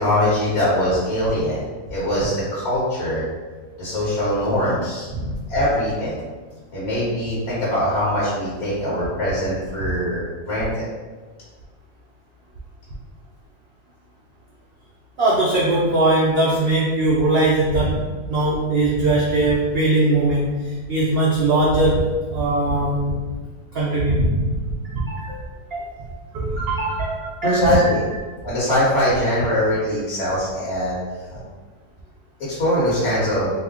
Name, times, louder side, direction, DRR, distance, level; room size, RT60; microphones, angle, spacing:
voice 1, 0.0-3.2 3.8-5.1 5.5-6.2 6.7-10.9 27.4-28.0 28.4-31.0 31.3-31.4 32.4-33.5, left 1 dB, 70° left, -10 dB, 1.5 m, -22 dB
voice 2, 15.2-22.0 22.3-23.2 23.7-25.4 25.7-25.9 26.3-27.9, right 2 dB, 85° right, -5 dB, 0.5 m, -20 dB
3.1 x 2.1 x 3.6 m, 1.3 s
omnidirectional pair, 1.6 m